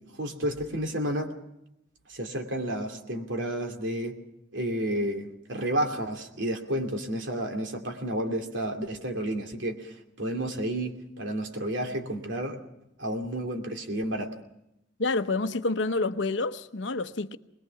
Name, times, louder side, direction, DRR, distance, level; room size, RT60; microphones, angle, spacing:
voice 1, 0.0-1.3 2.1-4.2 4.5-12.6 13.0-14.3, right 1 dB, 80° right, 2.7 m, -31 dB
voice 2, 15.0-17.4, left 3 dB, 75° left, 0.9 m, -28 dB
22.5 x 20.5 x 5.9 m
head